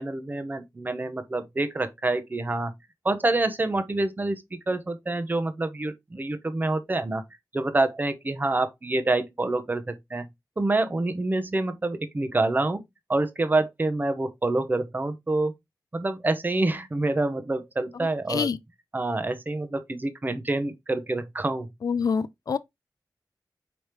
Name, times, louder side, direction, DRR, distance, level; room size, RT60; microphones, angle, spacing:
voice 1, 0.0-2.7 3.0-7.2 7.5-10.3 10.6-12.8 13.1-15.5 15.9-18.5 18.9-21.7, right 2 dB, 25° right, 0.7 m, -27 dB
voice 2, 21.8-22.6, left 6 dB, 55° left, 0.3 m, -26 dB
5.0 x 3.0 x 3.0 m
wide cardioid pair, 120°, 7 cm